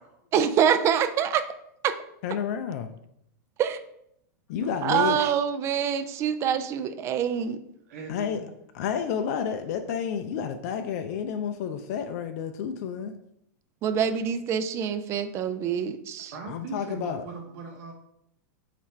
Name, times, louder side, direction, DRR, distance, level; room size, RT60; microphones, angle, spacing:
voice 1, 0.3-1.4 1.8-2.0 3.6-3.8 4.8-7.6 13.8-16.3, right 8 dB, 30° right, 11 dB, 0.3 m, -25 dB
voice 2, 2.2-2.9 4.5-5.2 8.1-8.4 8.7-13.1 16.5-17.2, left 7 dB, 55° left, 7 dB, 0.4 m, -30 dB
voice 3, 4.6-5.1 7.9-8.5 16.3-17.9, right 4 dB, 60° right, 1 dB, 0.8 m, -40 dB
4.1 x 2.5 x 4.4 m, 0.76 s
hypercardioid pair, 135°, 10 cm